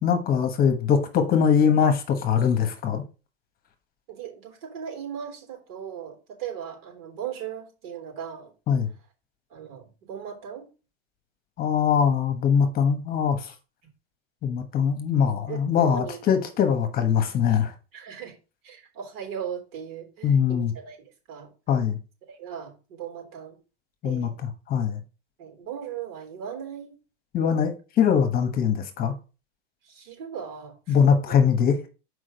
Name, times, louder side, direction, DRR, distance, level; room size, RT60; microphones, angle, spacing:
voice 1, 0.0-3.0 8.7-8.9 11.6-13.5 14.4-17.7 20.2-20.7 21.7-22.0 24.0-25.0 27.3-29.1 30.9-31.8, left 7 dB, 30° left, 1.2 m, -22 dB
voice 2, 4.1-8.5 9.5-10.7 15.5-16.2 17.9-18.4 18.6-21.0 21.3-21.5 22.3-23.6 24.0-24.4 25.4-27.0 29.8-31.0 31.3-31.4, right 8 dB, 75° right, 3.7 m, -38 dB
6.3 x 4.9 x 5.1 m
supercardioid pair, 135°, 31 cm